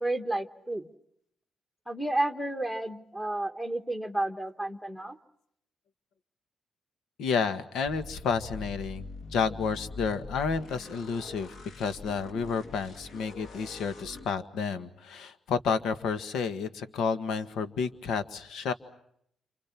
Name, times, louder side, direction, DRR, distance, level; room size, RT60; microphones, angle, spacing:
voice 1, 0.0-0.9 1.9-5.2, right 1 dB, 5° left, 5 dB, 1.3 m, -31 dB
voice 2, 7.2-18.7, left 5 dB, 90° left, 10 dB, 1.6 m, -31 dB
sound 1, 7.8-14.3, left 3 dB, 55° left, 2.6 m, -44 dB
29.5 x 29.0 x 6.0 m, 0.73 s
wide cardioid pair, 165°, 0 cm